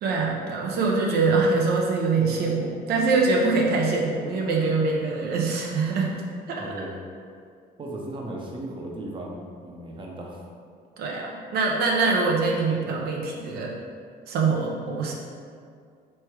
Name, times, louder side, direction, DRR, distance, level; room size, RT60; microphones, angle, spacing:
voice 1, 0.0-6.2 6.5-6.6 11.0-13.7 14.3-15.1, right 3 dB, 70° right, -1 dB, 0.6 m, -24 dB
voice 2, 6.6-7.0 7.8-10.4, right 1 dB, 30° right, -1 dB, 0.7 m, -36 dB
3.4 x 3.2 x 4.6 m, 2.2 s
cardioid pair, 110°, 17 cm